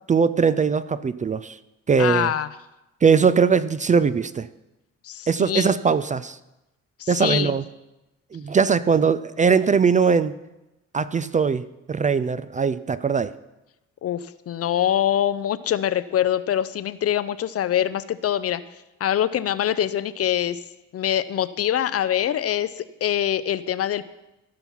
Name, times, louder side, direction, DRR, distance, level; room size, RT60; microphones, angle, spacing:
voice 1, 0.1-1.6 1.9-2.3 3.0-4.5 5.3-6.4 7.1-7.6 8.3-10.4 10.9-13.3, right 5 dB, 25° right, 14 dB, 0.4 m, -20 dB
voice 2, 2.0-2.5 5.0-5.7 7.0-7.5 14.0-18.6 19.0-20.6 20.9-24.0, left 10 dB, 50° left, 15 dB, 0.6 m, -24 dB
15.0 x 5.8 x 5.6 m, 0.98 s
cardioid pair, 90°, 30 cm